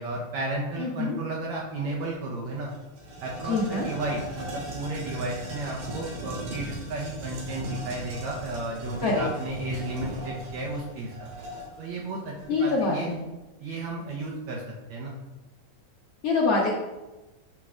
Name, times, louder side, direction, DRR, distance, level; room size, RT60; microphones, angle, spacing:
voice 1, 0.0-2.7 3.2-11.3 11.8-13.1 13.6-14.6 14.9-15.2, right 2 dB, 70° right, -2 dB, 1.9 m, -33 dB
voice 2, 0.8-1.2 3.5-3.9 9.0-9.2 12.5-13.3 16.2-16.7, left 3 dB, 65° left, -4 dB, 1.6 m, -25 dB
sound 1, 2.0-2.1 2.5-13.2, right 1 dB, 85° right, 3.7 m, -38 dB
7.7 x 3.8 x 6.1 m, 1.1 s
omnidirectional pair, 4.0 m